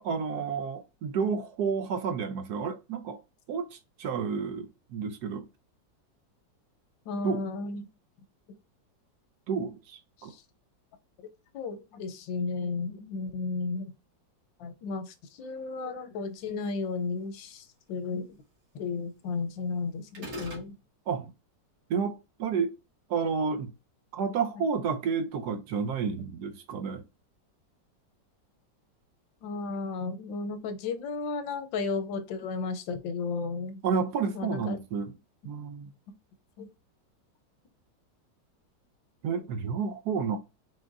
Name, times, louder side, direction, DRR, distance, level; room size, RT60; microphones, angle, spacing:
voice 1, 0.0-3.2 3.5-5.5 7.2-7.4 9.5-10.3 21.1-21.3 21.9-22.8 23.1-23.7 24.1-27.0 33.8-35.2 35.4-35.9 39.2-40.4, right 6 dB, 70° right, 1.0 m, -30 dB
voice 2, 7.1-7.9 11.5-13.9 14.6-18.3 18.7-20.7 29.4-33.8 34.3-34.8 36.6-36.7, left 4 dB, 90° left, 1.5 m, -33 dB
sound 1, 20.1-20.7, equal, 50° right, 2.1 m, -39 dB
4.8 x 3.9 x 2.6 m
omnidirectional pair, 2.0 m